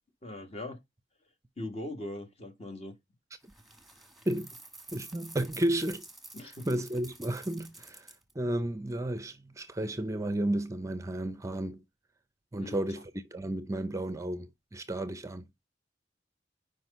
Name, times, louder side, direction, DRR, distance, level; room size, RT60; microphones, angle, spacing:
voice 1, 0.2-0.8 1.6-2.9 6.3-6.7 12.6-12.9, left 1 dB, 35° left, 1.7 m, -40 dB
sound 1, 3.4-8.3, right 2 dB, ahead, 1.5 m, -50 dB
voice 2, 4.9-6.0 6.4-8.1 8.4-11.8 12.5-15.5, right 1 dB, 20° right, 0.6 m, -33 dB
6.1 x 5.2 x 5.4 m
head